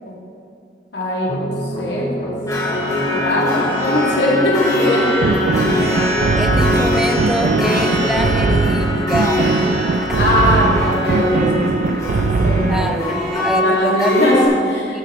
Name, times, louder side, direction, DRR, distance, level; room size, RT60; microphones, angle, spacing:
voice 1, 0.9-2.3 3.1-5.1 10.2-12.1 12.4-13.2 13.6-15.0, left 1 dB, 70° left, -4 dB, 2.6 m, -20 dB
sound 1, 1.3-10.3, equal, 40° left, 2.2 m, -27 dB
sound 2, 2.5-14.5, left 1 dB, 20° left, 2.2 m, -22 dB
sound 3, 5.2-13.0, right 4 dB, 50° right, 0.4 m, -20 dB
voice 2, 5.7-6.1 6.4-9.7 10.1-10.2 12.7-14.1 14.9-15.0, equal, 5° right, 5 dB, 0.6 m, -25 dB
14.0 x 5.9 x 5.1 m, 2.5 s
head